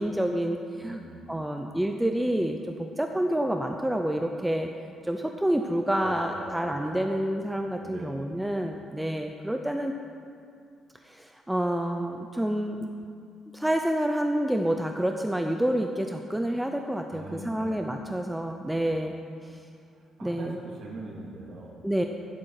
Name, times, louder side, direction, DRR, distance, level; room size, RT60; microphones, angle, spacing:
voice 1, 0.0-1.0 1.3-4.7 5.0-9.9 11.0-12.9 13.5-19.1 19.4-19.6 20.2-20.6 21.8-22.0, right 1 dB, 5° right, 4 dB, 0.6 m, -28 dB
voice 2, 0.8-1.4 6.0-7.1 7.8-8.3 17.1-18.0 18.7-19.0 19.9-21.8, right 2 dB, 55° right, -4 dB, 2.7 m, -42 dB
15.5 x 12.0 x 4.9 m, 2.3 s
cardioid pair, 140°, 0 cm